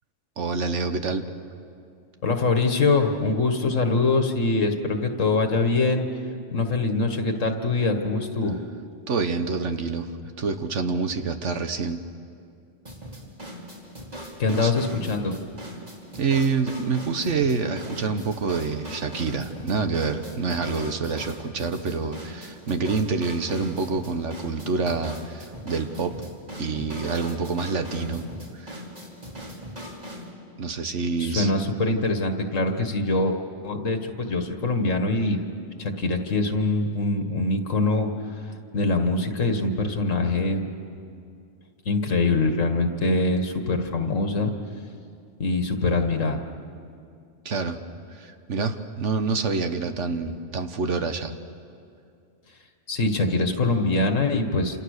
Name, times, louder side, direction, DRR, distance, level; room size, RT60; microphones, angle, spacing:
voice 1, 0.4-1.3 9.1-10.1 10.4-12.0 14.5-14.7 16.2-26.2 26.6-28.2 28.5-28.8 30.6-31.5 47.4-47.8 48.1-51.3, right 4 dB, 70° right, 8 dB, 1.5 m, -27 dB
voice 2, 2.2-6.0 6.5-8.6 14.4-15.3 31.2-33.4 33.6-35.4 35.8-38.4 38.7-40.7 41.9-44.5 45.4-46.4 52.9-54.8, left 3 dB, 85° left, 6 dB, 2.0 m, -23 dB
sound 1, 12.8-30.3, equal, 30° right, 3.2 m, -39 dB
28.0 x 28.0 x 6.6 m, 2.4 s
omnidirectional pair, 1.3 m